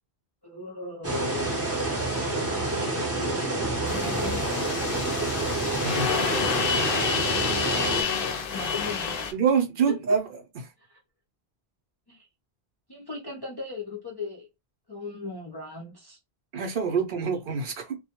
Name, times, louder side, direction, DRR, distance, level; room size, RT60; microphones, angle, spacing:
voice 1, 0.4-1.6 2.6-3.5 3.8-4.4 7.5-9.3 9.9-10.0 10.8-11.0 12.1-12.3 12.9-14.5 14.9-16.2, left 3 dB, 30° left, 0.5 m, -38 dB
sound 1, 1.0-8.0, right 2 dB, 15° right, 0.6 m, -28 dB
sound 2, 3.9-9.3, left 6 dB, 65° left, 0.7 m, -29 dB
voice 2, 9.3-10.3 16.5-18.0, right 6 dB, 60° right, 0.7 m, -25 dB
2.2 x 2.1 x 2.8 m
omnidirectional pair, 1.0 m